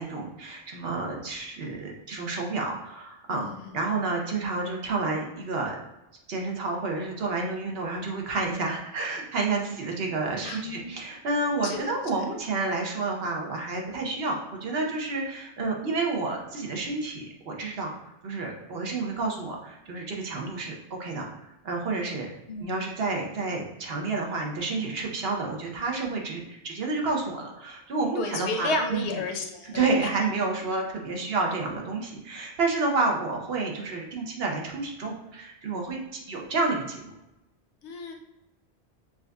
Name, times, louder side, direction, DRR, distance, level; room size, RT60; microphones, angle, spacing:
voice 1, 0.0-5.8 6.3-17.9 18.2-22.3 22.6-29.1 29.6-37.1, right 3 dB, 70° right, 0 dB, 1.0 m, -30 dB
voice 2, 3.3-3.8 10.4-10.9 11.6-11.9 15.6-15.7 22.5-23.1 28.2-30.1 37.8-38.1, left 2 dB, 85° left, 4 dB, 0.9 m, -32 dB
6.0 x 2.6 x 2.2 m, 0.93 s
omnidirectional pair, 1.1 m